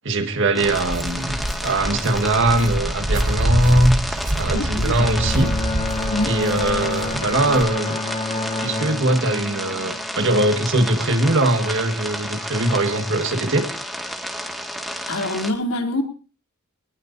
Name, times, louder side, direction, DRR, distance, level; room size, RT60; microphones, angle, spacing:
voice 1, 0.0-5.6 6.3-8.0 8.6-13.7, right 1 dB, 60° right, 6 dB, 1.9 m, -21 dB
sound 1, 0.5-15.5, equal, ahead, 2.2 m, -31 dB
Walk footsteps, 0.6-7.6, right 1 dB, 40° right, 1.3 m, -25 dB
voice 2, 4.5-5.0 6.1-6.3 15.1-16.0, left 2 dB, 75° left, 3 dB, 3.5 m, -25 dB
Bowed string instrument, 5.0-10.4, left 3 dB, 30° left, 1.7 m, -29 dB
23.0 x 19.5 x 2.8 m, 0.39 s
head